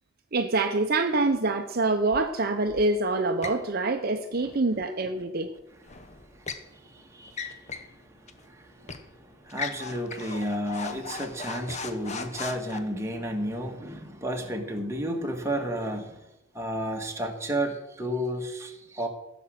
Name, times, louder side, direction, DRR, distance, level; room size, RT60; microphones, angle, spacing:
voice 1, 0.3-5.5, right 2 dB, 45° right, 6 dB, 0.7 m, -25 dB
sound 1, 3.4-3.7 5.9-6.7 7.3-7.9 8.3-8.4 8.9-9.1 9.5-12.8, left 4 dB, 30° left, 0.8 m, -37 dB
voice 2, 5.9-16.2 16.5-19.1, equal, 15° right, 2 dB, 1.5 m, -33 dB
15.5 x 6.1 x 7.8 m, 0.94 s
head